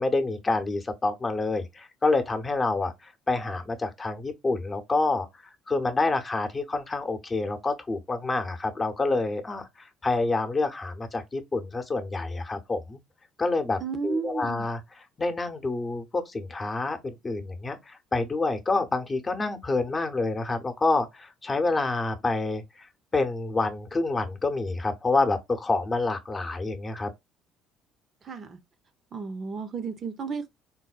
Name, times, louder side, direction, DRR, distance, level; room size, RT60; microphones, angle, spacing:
voice 1, 0.0-13.0 13.4-22.9 23.1-27.1, left 3 dB, 25° left, 0.7 m, -28 dB
voice 2, 13.8-14.7 28.2-28.6 29.1-30.5, right 5 dB, 45° right, 0.6 m, -33 dB
3.9 x 2.1 x 2.4 m
supercardioid pair, 80°, 0 cm